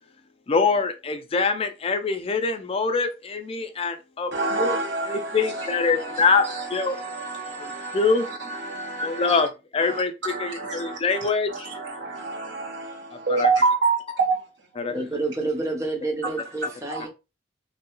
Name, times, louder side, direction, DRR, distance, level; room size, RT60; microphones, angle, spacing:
voice 1, 0.5-4.8 5.1-7.0 7.9-8.2 9.0-9.5 9.7-11.7 13.4-13.5 14.8-14.9, left 4 dB, 30° left, 0.4 m, -24 dB
voice 2, 4.3-9.5 9.8-10.0 10.3-14.4 16.9-17.0, right 3 dB, 85° right, 0.9 m, -28 dB
voice 3, 14.9-17.1, right 2 dB, 15° right, 0.7 m, -29 dB
3.2 x 2.3 x 2.9 m
head